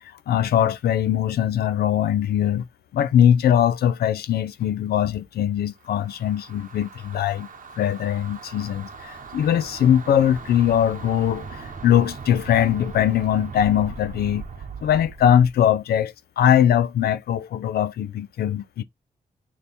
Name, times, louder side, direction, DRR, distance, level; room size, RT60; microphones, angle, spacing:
voice 1, 0.3-2.7 2.9-7.5 7.8-14.4 14.8-18.8, left 10 dB, 85° left, 0.4 m, -21 dB
sound 1, 5.8-15.6, right 5 dB, 60° right, 0.9 m, -39 dB
4.3 x 2.7 x 3.4 m
cardioid pair, 50°, 16 cm